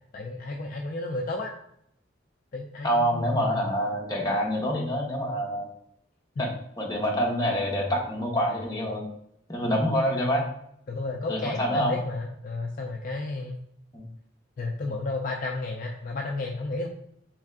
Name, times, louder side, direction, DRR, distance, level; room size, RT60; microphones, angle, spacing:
voice 1, 0.1-1.5 2.5-3.7 10.9-13.6 14.6-16.9, left 2 dB, 45° left, 1 dB, 0.3 m, -32 dB
voice 2, 2.8-5.7 6.4-6.5 6.8-9.0 9.5-10.4 11.3-12.0 13.9-14.0, equal, 20° left, -2 dB, 0.8 m, -26 dB
3.4 x 3.2 x 3.6 m, 0.73 s
head